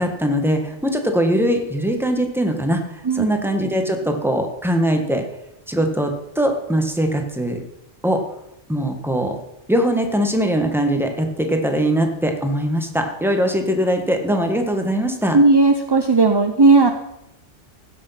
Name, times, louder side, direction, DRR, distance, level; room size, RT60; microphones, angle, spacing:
voice 1, 0.0-5.2 5.7-7.6 8.0-8.2 8.7-9.4 9.7-15.4, equal, ahead, 4 dB, 1.3 m, -21 dB
voice 2, 15.3-16.9, right 3 dB, 30° right, 6 dB, 0.5 m, -14 dB
16.0 x 6.4 x 5.7 m, 0.86 s
omnidirectional pair, 1.2 m